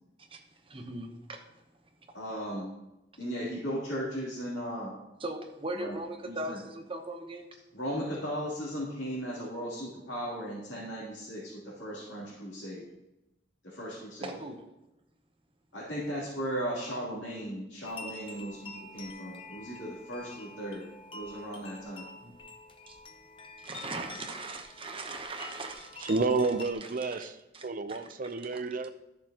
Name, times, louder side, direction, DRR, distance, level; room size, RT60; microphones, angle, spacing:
voice 1, 0.2-1.4 5.2-7.5 14.2-14.6 22.2-22.3 22.9-23.0 23.6-26.1 26.8-28.3, right 2 dB, 30° right, 1.0 m, -40 dB
voice 2, 2.1-2.7 3.2-4.9 5.8-5.9 6.2-6.6 7.7-12.8 13.6-14.3 15.7-20.9 21.1-22.1, equal, 80° left, 3.1 m, -37 dB
sound 1, 17.8-26.7, left 2 dB, 30° left, 0.8 m, -47 dB
voice 3, 26.0-27.4 27.6-28.9, right 3 dB, 45° right, 0.6 m, -30 dB
13.0 x 6.8 x 2.9 m
head